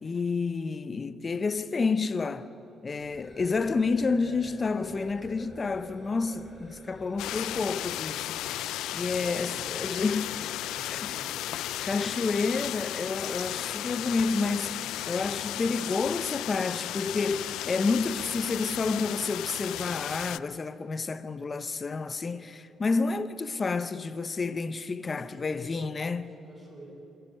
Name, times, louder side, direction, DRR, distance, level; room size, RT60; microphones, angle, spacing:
voice 1, 0.0-2.5 2.8-8.6 8.9-10.4 10.9-11.1 11.8-26.3, left 4 dB, 35° left, 0.8 m, -30 dB
sound 1, 3.0-8.0, left 1 dB, 10° left, 6.0 m, -48 dB
sound 2, 7.2-20.4, left 14 dB, 90° left, 0.3 m, -34 dB
voice 2, 9.2-10.0 10.4-11.5 25.2-26.9, right 1 dB, 25° right, 5.3 m, -49 dB
26.0 x 10.5 x 9.4 m
cardioid pair, 90°, 0 cm